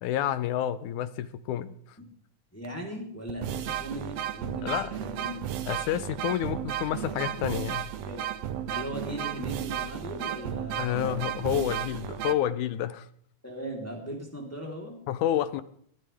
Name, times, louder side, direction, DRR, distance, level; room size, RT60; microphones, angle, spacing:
voice 1, 0.0-1.7 4.6-4.9 5.7-7.9 10.8-13.1 15.1-15.6, left 11 dB, 75° left, 14 dB, 2.1 m, -29 dB
voice 2, 2.5-5.4 8.1-8.2 8.7-11.1 13.4-15.0, equal, 5° left, -1 dB, 3.4 m, -38 dB
sound 1, 2.6-2.7 3.3-12.3, right 10 dB, 70° right, 1.7 m, -34 dB
22.0 x 12.0 x 3.5 m, 0.62 s
omnidirectional pair, 3.7 m